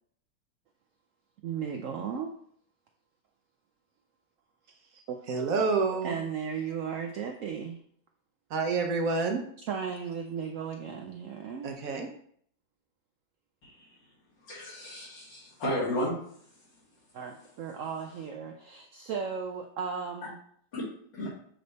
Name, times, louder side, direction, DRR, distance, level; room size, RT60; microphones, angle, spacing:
voice 1, 1.4-2.3 5.1-5.7 6.0-7.8 9.7-11.7 17.1-20.4, right 6 dB, 85° right, 3 dB, 0.7 m, -36 dB
voice 2, 5.3-6.2 8.5-9.4 11.6-12.1, right 4 dB, 60° right, 3 dB, 1.0 m, -28 dB
voice 3, 14.4-16.1 20.7-20.8 21.1-21.3, equal, 80° left, -6 dB, 3.0 m, -33 dB
7.6 x 3.3 x 4.0 m, 0.64 s
omnidirectional pair, 2.0 m